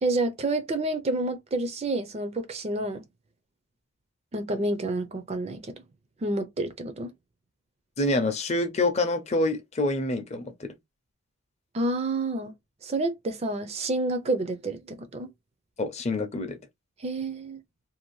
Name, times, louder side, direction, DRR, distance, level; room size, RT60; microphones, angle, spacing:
voice 1, 0.0-3.0 4.3-5.7 6.2-7.1 11.7-12.5 12.8-15.3 17.0-17.6, right 2 dB, 30° right, 0.4 m, -29 dB
voice 2, 8.0-10.7 15.8-16.6, left 2 dB, 30° left, 0.5 m, -26 dB
2.6 x 2.5 x 3.0 m
head